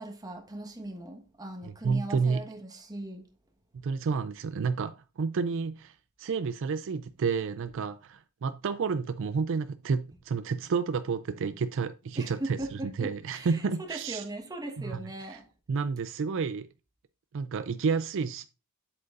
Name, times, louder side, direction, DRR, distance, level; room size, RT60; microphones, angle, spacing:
voice 1, 0.0-3.2 12.2-15.5, right 1 dB, 15° right, 1.4 m, -39 dB
voice 2, 1.6-2.4 3.8-14.2 14.8-15.0 15.3-15.4 15.7-16.7 17.3-18.4, right 5 dB, 60° right, 0.4 m, -30 dB
7.9 x 7.7 x 2.5 m
head